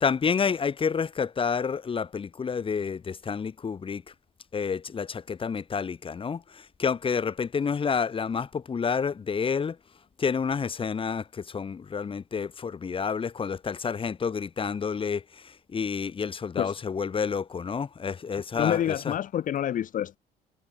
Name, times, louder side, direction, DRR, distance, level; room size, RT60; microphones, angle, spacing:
voice 1, 0.0-4.0 4.5-9.8 10.2-19.1, left 6 dB, 30° left, 2.2 m, -29 dB
voice 2, 18.5-20.2, left 10 dB, 50° left, 1.2 m, -27 dB
cardioid pair, 110°, 17 cm